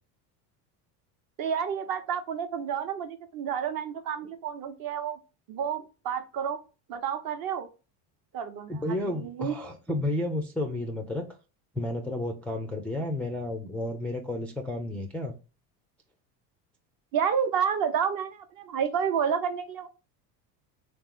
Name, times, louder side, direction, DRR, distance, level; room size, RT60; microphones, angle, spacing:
voice 1, 1.4-5.2 5.5-6.6 6.9-7.7 8.3-9.6 17.1-19.9, right 7 dB, 45° right, 8 dB, 0.8 m, -30 dB
voice 2, 8.7-11.2 11.7-15.3, left 1 dB, 5° left, 1 dB, 0.3 m, -31 dB
3.3 x 3.1 x 3.6 m, 0.31 s
supercardioid pair, 95°, 47 cm